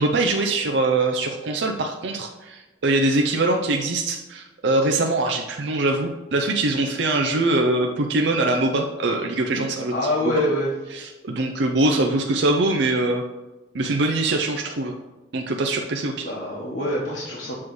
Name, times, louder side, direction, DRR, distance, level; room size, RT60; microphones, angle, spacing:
voice 1, 0.0-9.9 10.9-13.2 13.7-14.9 15.3-16.3, right 2 dB, 65° right, 2 dB, 0.5 m, -23 dB
voice 2, 9.9-10.7 16.2-17.5, left 1 dB, 60° left, -5 dB, 1.2 m, -25 dB
7.5 x 3.2 x 6.1 m, 1.1 s
head